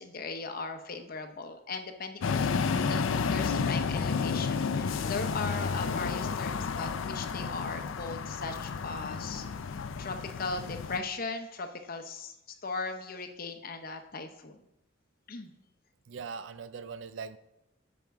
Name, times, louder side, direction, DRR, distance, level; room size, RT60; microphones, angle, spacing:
voice 1, 0.0-2.5 2.8-9.5 10.0-12.3 12.6-14.6 15.3-15.5, left 4 dB, 50° left, 7 dB, 0.7 m, -38 dB
sound 1, 2.2-11.0, left 5 dB, 85° left, 0.4 m, -31 dB
voice 2, 16.1-17.4, right 5 dB, 75° right, 14 dB, 0.5 m, -40 dB
12.5 x 5.2 x 3.5 m, 0.87 s
head